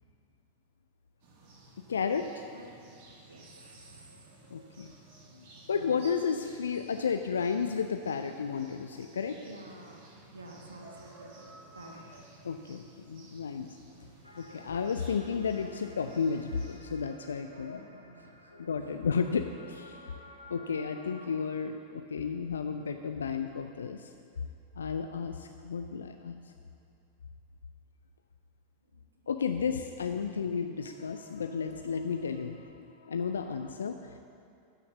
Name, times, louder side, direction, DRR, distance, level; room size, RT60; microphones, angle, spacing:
sound 1, 1.2-16.8, right 2 dB, 45° right, 2.0 m, -55 dB
voice 1, 1.9-2.4 4.5-4.9 5.3-9.4 12.4-13.7 14.4-17.8 18.6-20.0 20.5-24.1 24.8-26.4 29.3-34.2, left 6 dB, 70° left, 7 dB, 0.4 m, -33 dB
voice 2, 3.2-4.2 9.3-11.1 11.4-12.2 14.0-14.1 17.4-18.5 28.9-29.0 29.3-29.6 33.6-33.7, right 1 dB, 75° right, 3 dB, 1.1 m, -51 dB
sound 2, 14.2-21.4, left 2 dB, 85° left, 0.9 m, -52 dB
12.5 x 5.8 x 7.0 m, 2.5 s
figure-of-eight pair, 90°, 0 cm